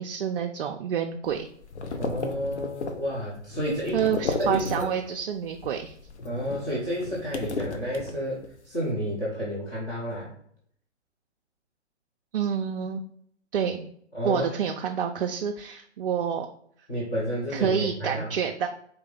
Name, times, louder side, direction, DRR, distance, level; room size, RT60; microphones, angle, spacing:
voice 1, 0.0-1.5 3.9-5.9 12.3-13.0 13.5-13.9 14.2-16.5 17.5-18.7, right 8 dB, 55° right, 3 dB, 0.4 m, -28 dB
sound 1, 1.3-5.2 5.5-8.6, left 3 dB, 70° left, 0.7 m, -34 dB
voice 2, 2.0-4.0 4.4-4.9 6.2-10.3 14.1-14.5 16.9-18.3, equal, 10° left, -9 dB, 0.5 m, -30 dB
4.1 x 2.8 x 3.7 m, 0.65 s
figure-of-eight pair, 130°, 35 cm